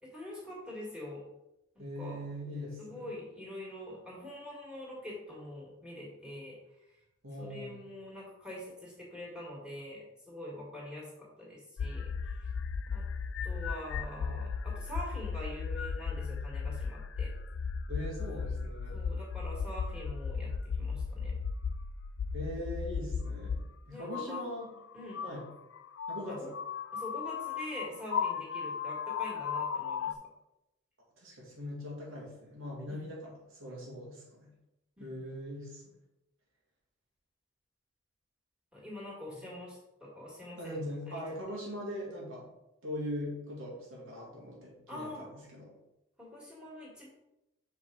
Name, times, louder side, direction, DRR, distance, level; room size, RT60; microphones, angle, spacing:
voice 1, 0.0-1.2 1.8-2.2 2.8-6.6 6.8-7.0 7.4-12.5 12.9-13.1 13.4-17.3 18.9-21.4 23.9-24.4 24.9-25.2 26.3-26.5 26.9-30.2 32.9-33.0 35.0-35.3 38.7-41.2 44.9-45.3 46.2-47.1, left 1 dB, 5° right, -5 dB, 1.9 m, -45 dB
voice 2, 1.8-3.1 7.2-7.7 17.9-19.0 22.3-24.7 25.2-25.4 26.1-26.5 31.2-34.5 35.0-35.8 39.3-39.4 40.6-42.5 42.8-45.7, equal, 85° right, -3 dB, 2.2 m, -41 dB
sound 1, 11.8-23.6 24.1-30.1, left 6 dB, 65° left, 0.3 m, -36 dB
5.6 x 4.9 x 3.9 m, 0.90 s
head